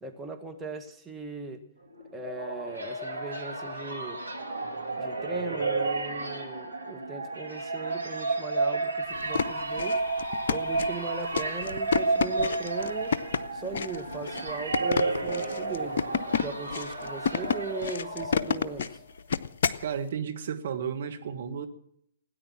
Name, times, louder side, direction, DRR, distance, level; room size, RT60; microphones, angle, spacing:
voice 1, 0.0-1.6 2.1-4.2 4.9-10.0 10.5-13.2 13.5-16.1 16.4-19.0, right 4 dB, 5° right, 2 dB, 1.5 m, -38 dB
sound 1, 1.9-18.9, right 3 dB, 90° right, 2.4 m, -32 dB
sound 2, 9.1-19.9, left 6 dB, 55° left, 0.8 m, -30 dB
voice 2, 19.8-21.7, right 7 dB, 55° right, 6 dB, 1.6 m, -33 dB
17.5 x 9.9 x 7.3 m, 0.69 s
figure-of-eight pair, 125°, 0 cm